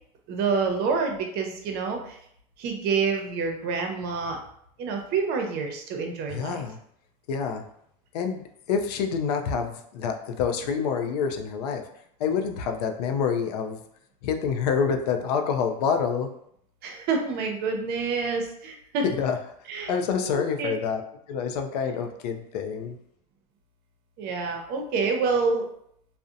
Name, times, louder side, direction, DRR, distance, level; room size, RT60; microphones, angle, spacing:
voice 1, 0.3-2.2 2.6-4.4 4.8-6.6 16.8-19.1 19.7-19.9 20.2-20.7 24.2-25.7, right 4 dB, 55° right, 3 dB, 0.6 m, -27 dB
voice 2, 6.3-6.8 7.3-7.6 8.1-11.8 12.2-13.8 14.2-16.3 19.0-19.4 19.9-21.0 21.3-23.0, left 6 dB, 90° left, 6 dB, 0.4 m, -27 dB
2.6 x 2.0 x 2.4 m, 0.69 s
supercardioid pair, 105°, 20 cm